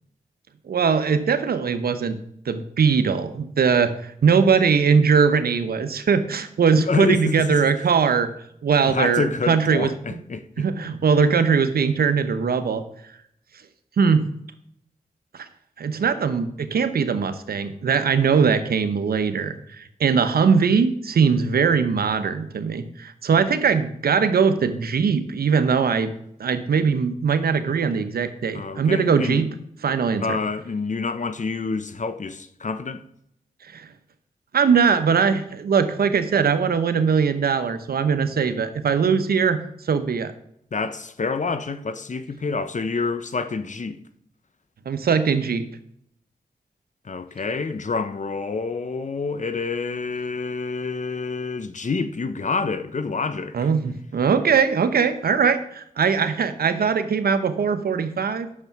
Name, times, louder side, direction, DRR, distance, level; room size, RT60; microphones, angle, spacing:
voice 1, 0.7-2.2 2.5-8.3 8.6-10.2 10.6-12.8 14.0-14.2 15.3-15.5 15.8-26.1 26.4-29.5 29.8-30.4 33.7-33.9 34.5-39.6 39.8-40.3 44.9-45.6 53.5-58.6, right 6 dB, 80° right, 1.0 m, -21 dB
voice 2, 6.7-7.6 8.8-10.6 28.5-29.5 30.2-33.0 40.7-44.0 47.0-53.7, left 4 dB, 50° left, 1.0 m, -27 dB
9.9 x 6.8 x 5.9 m
cardioid pair, 45°, 16 cm